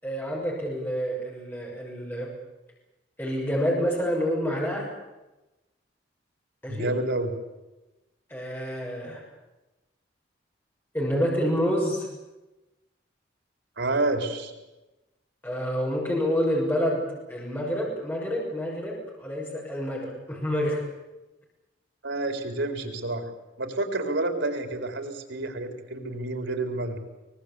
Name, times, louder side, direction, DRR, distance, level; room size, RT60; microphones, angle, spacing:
voice 1, 0.0-2.3 3.2-4.9 6.6-6.9 8.3-9.2 10.9-12.1 15.4-17.0 17.3-20.8, equal, 10° left, -3 dB, 6.5 m, -28 dB
voice 2, 6.7-7.3 13.8-14.5 22.0-23.3 23.6-27.0, right 2 dB, 85° right, 6 dB, 4.2 m, -29 dB
23.5 x 20.0 x 8.6 m, 1.0 s
head